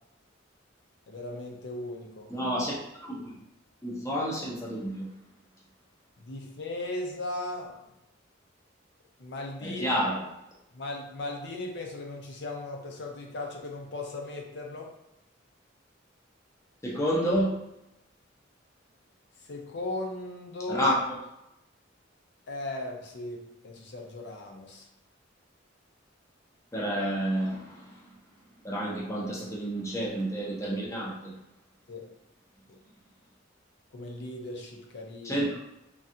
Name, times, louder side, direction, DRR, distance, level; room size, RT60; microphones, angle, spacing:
voice 1, 1.1-2.3 6.2-7.8 9.2-10.0 10.7-14.9 19.5-21.0 22.5-24.9 31.9-32.1 32.7-32.8 33.9-35.5, left 2 dB, 60° left, 1 dB, 0.6 m, -37 dB
voice 2, 2.3-2.7 3.0-3.4 3.8-5.1 9.6-10.2 16.8-17.6 20.7-21.2 26.7-28.0 28.6-31.3 35.2-35.6, equal, 15° left, -5 dB, 0.6 m, -29 dB
3.4 x 2.3 x 2.7 m, 0.87 s
head